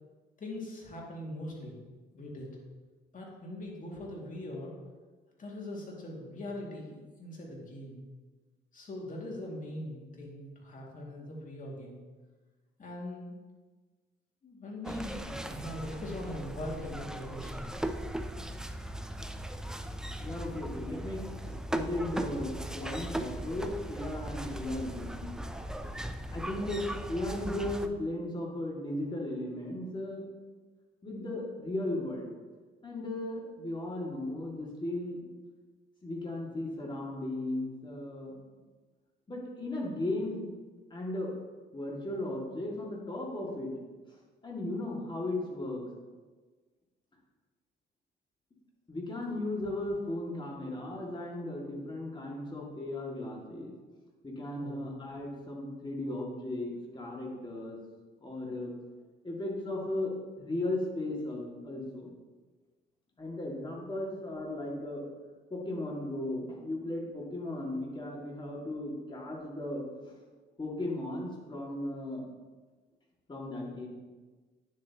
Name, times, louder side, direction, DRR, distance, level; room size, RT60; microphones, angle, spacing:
voice 1, 0.4-1.8 2.1-2.5 3.1-4.8 5.4-8.0 8.7-12.0 12.8-13.4 14.4-17.9 54.6-54.9, left 1 dB, 40° left, -2 dB, 2.3 m, -41 dB
sound 1, 14.8-27.9, right 1 dB, 5° right, 0.4 m, -38 dB
voice 2, 20.2-25.3 26.3-30.3 31.0-32.3 32.8-35.2 36.0-38.3 39.3-40.5 40.9-41.3 41.7-43.7 44.1-44.2 44.4-45.8 48.9-53.7 54.2-57.8 58.2-58.7 59.2-62.1 63.2-65.0 65.5-70.1 70.6-72.2 73.3-73.9, left 1 dB, 25° left, -2 dB, 2.3 m, -36 dB
9.7 x 7.5 x 3.0 m, 1.3 s
cardioid pair, 90°, 20 cm